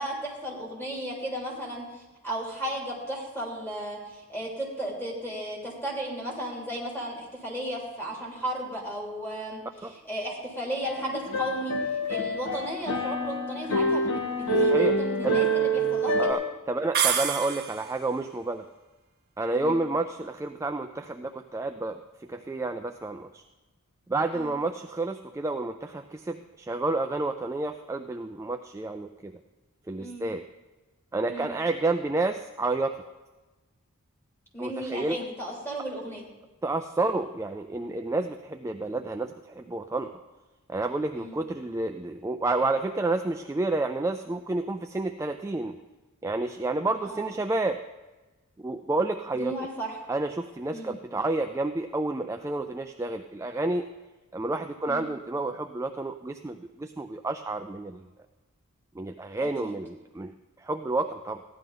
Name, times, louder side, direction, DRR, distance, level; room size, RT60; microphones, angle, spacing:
voice 1, 0.0-11.7 12.1-16.4 19.6-19.8 24.3-24.6 30.0-30.3 31.2-31.5 34.5-36.2 41.1-41.4 47.0-47.3 49.3-50.0 50.7-51.0 54.9-55.1 59.4-59.8, right 1 dB, 10° left, -3 dB, 2.9 m, -35 dB
sound 1, 10.8-16.3, right 1 dB, 80° left, 1.4 m, -26 dB
voice 2, 14.6-14.9 15.2-15.4 16.2-18.7 19.4-23.4 24.1-29.3 29.9-30.4 31.1-33.0 34.6-35.2 36.6-40.1 40.7-45.8 46.2-47.8 48.6-49.5 50.1-53.9 54.3-58.1 59.0-60.3 60.6-61.4, right 2 dB, 15° right, 6 dB, 0.3 m, -30 dB
sound 2, 16.9-18.0, right 8 dB, 45° right, 1.4 m, -27 dB
15.5 x 11.0 x 3.9 m, 1.2 s
head